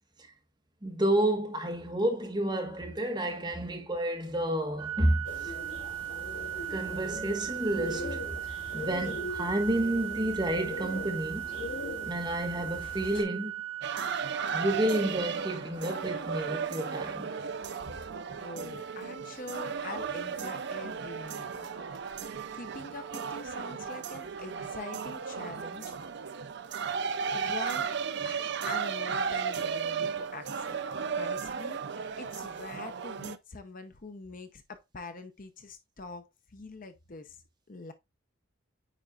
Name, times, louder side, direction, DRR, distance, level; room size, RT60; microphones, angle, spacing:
voice 1, 0.8-5.5 6.7-8.2 8.7-11.5 12.0-13.5 14.4-17.5, right 1 dB, 20° right, 1.3 m, -30 dB
Organ, 4.8-15.8, right 13 dB, 90° right, 0.8 m, -38 dB
sound 1, 5.2-13.2, left 2 dB, 70° left, 2.6 m, -40 dB
sound 2, 13.8-33.4, right 6 dB, 55° right, 0.5 m, -35 dB
voice 2, 18.4-21.9 22.5-25.9 27.3-27.9 28.2-30.8 31.1-36.2 36.5-37.4 37.7-37.9, left 3 dB, 40° left, 0.7 m, -44 dB
9.1 x 4.3 x 2.4 m
head